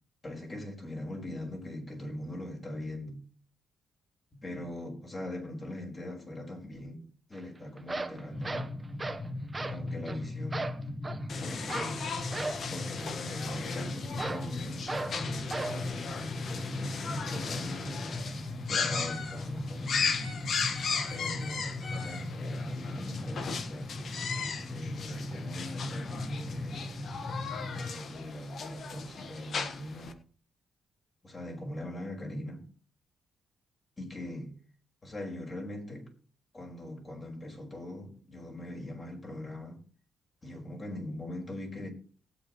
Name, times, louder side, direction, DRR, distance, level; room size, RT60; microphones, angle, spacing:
voice 1, 0.2-3.2 4.3-7.0 7.3-8.7 9.7-10.7 11.4-12.2 12.7-18.1 18.7-20.2 21.1-23.9 24.7-26.9 27.8-30.2 31.2-32.6 34.0-34.5 35.0-36.1 36.5-39.8 40.4-41.9, left 1 dB, 30° left, 4.9 m, -41 dB
sound 1, 7.3-7.4 7.8-9.3 9.5-9.8 10.1-10.2 10.5-11.3 11.7-12.0 12.3-12.6 14.2-14.5 14.9-15.2 15.5-15.8, right 2 dB, 20° right, 1.1 m, -36 dB
sound 2, 8.3-27.9, left 2 dB, 15° left, 1.3 m, -38 dB
sound 3, 11.3-30.1, left 5 dB, 60° left, 1.5 m, -37 dB
19.0 x 8.5 x 3.1 m
cardioid pair, 100°, 0 cm